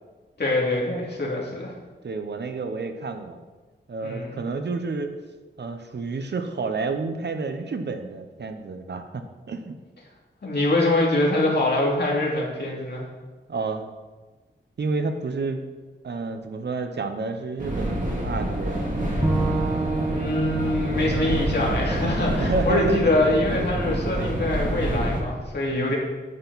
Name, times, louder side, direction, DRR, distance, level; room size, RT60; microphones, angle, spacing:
voice 1, 0.4-1.7 4.0-4.4 10.4-13.0 20.1-26.0, left 2 dB, 60° left, -3 dB, 2.6 m, -24 dB
voice 2, 2.0-3.4 3.9-5.1 5.6-9.8 13.5-13.9 14.8-15.6 16.0-18.9 22.4-23.0 25.7-25.9, right 4 dB, 60° right, 7 dB, 0.8 m, -30 dB
sound 1, 17.6-25.2, right 1 dB, 40° right, 2.1 m, -27 dB
Bowed string instrument, 19.2-22.5, right 3 dB, 15° right, 1.1 m, -29 dB
8.9 x 8.7 x 4.1 m, 1.3 s
wide cardioid pair, 120°, 19 cm